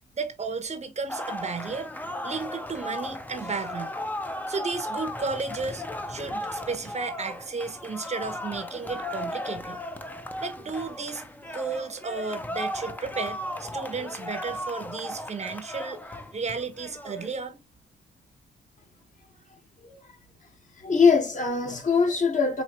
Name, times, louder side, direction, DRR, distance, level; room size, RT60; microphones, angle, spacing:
voice 1, 0.2-3.9 4.5-9.8 10.4-16.0 16.3-17.6, right 4 dB, 35° right, 0.7 m, -33 dB
sound 1, 1.1-17.4, left 1 dB, 10° left, 0.5 m, -36 dB
voice 2, 20.8-22.6, left 5 dB, 40° left, 1.1 m, -22 dB
4.3 x 2.7 x 2.9 m
cardioid pair, 95°, 20 cm